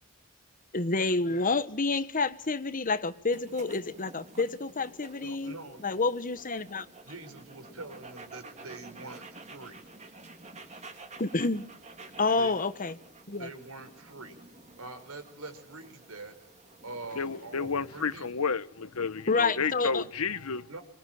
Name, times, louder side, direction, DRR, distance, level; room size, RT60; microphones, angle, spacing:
voice 1, 0.7-5.5 5.8-6.9 11.2-11.6 12.2-12.9 13.3-13.5 19.3-20.0, left 3 dB, 40° left, 1.3 m, -28 dB
sound 1, 3.3-18.3, right 3 dB, 30° right, 3.2 m, -51 dB
voice 2, 5.2-5.9 7.0-9.8 12.2-12.5 13.3-14.4 14.8-16.4 16.8-18.4 20.7-20.8, right 2 dB, 80° right, 5.2 m, -44 dB
voice 3, 17.2-20.7, left 5 dB, 80° left, 1.0 m, -31 dB
26.0 x 21.0 x 9.3 m
head